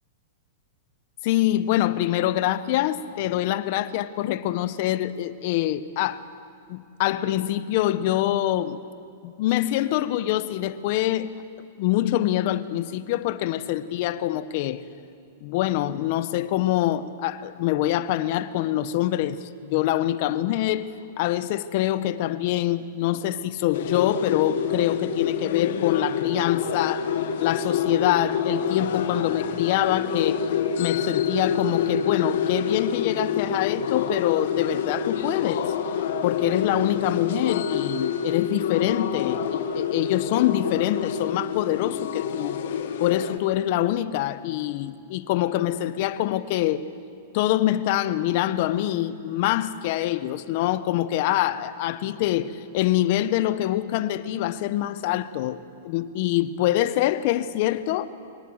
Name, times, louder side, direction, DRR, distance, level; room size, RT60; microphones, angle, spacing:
voice 1, 1.2-6.2 6.7-8.8 9.2-11.3 11.8-14.8 15.4-20.9 21.2-27.1 27.4-30.5 30.8-35.7 36.2-42.6 43.0-46.9 47.3-58.1, left 13 dB, 50° left, 0.9 m, -25 dB
sound 1, 23.7-43.4, left 7 dB, 70° left, 1.6 m, -27 dB
24.0 x 18.5 x 8.0 m
hypercardioid pair, 150°, 0 cm